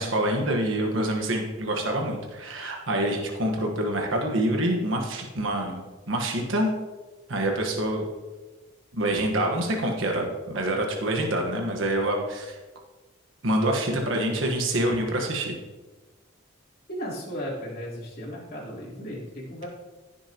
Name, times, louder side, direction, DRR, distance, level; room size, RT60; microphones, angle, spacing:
voice 1, 0.0-6.7 7.3-8.1 8.9-12.6 13.4-15.6, right 1 dB, 70° right, 2 dB, 1.4 m, -26 dB
voice 2, 16.9-19.7, equal, 45° left, -5 dB, 3.4 m, -35 dB
15.5 x 7.1 x 3.0 m, 1.2 s
head